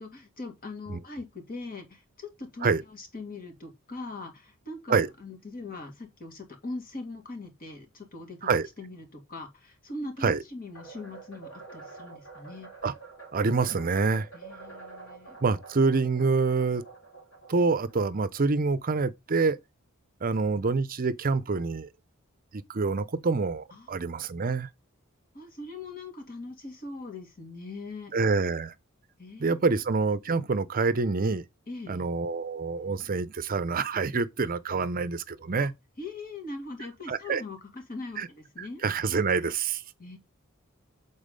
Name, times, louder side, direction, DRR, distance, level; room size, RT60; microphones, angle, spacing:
voice 1, 0.0-8.5 8.8-12.7 14.3-15.4 23.7-23.9 25.3-28.1 29.2-29.8 31.7-32.0 35.6-35.7 36.0-38.8 40.0-40.2, left 2 dB, 40° left, 2.1 m, -41 dB
sound 1, 10.8-19.0, right 4 dB, 60° left, 2.7 m, -48 dB
voice 2, 13.3-14.3 15.4-16.8 17.5-19.6 20.2-21.9 22.5-24.7 28.1-28.7 29.4-31.4 31.9-35.7 37.1-37.4 38.2-38.3 38.6-39.8, right 4 dB, 40° right, 0.6 m, -26 dB
7.1 x 4.1 x 5.1 m
head